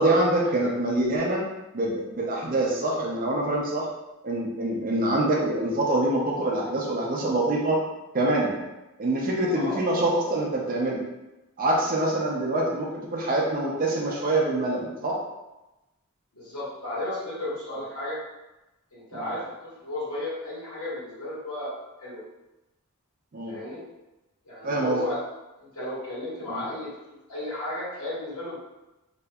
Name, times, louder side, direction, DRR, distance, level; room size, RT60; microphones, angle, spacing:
voice 1, 0.0-1.4 1.7-3.9 4.2-7.8 8.1-8.6 9.0-11.0 11.6-15.2 19.1-19.3 23.3-23.5 24.6-25.0 26.5-26.6, right 1 dB, 40° right, -2 dB, 0.5 m, -25 dB
voice 2, 16.3-18.2 18.9-19.4 19.8-21.7 22.0-22.2 23.5-23.8 24.4-25.2 25.6-26.9 27.3-28.6, left 1 dB, 75° left, -9 dB, 1.4 m, -33 dB
2.8 x 2.5 x 2.2 m, 1.0 s
head